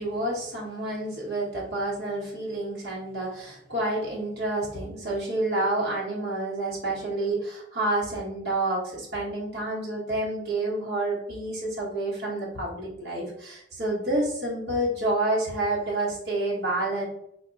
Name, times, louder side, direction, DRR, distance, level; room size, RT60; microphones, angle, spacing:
voice 1, 0.0-17.0, right 2 dB, 60° right, -5 dB, 1.3 m, -29 dB
4.1 x 2.0 x 3.9 m, 0.78 s
head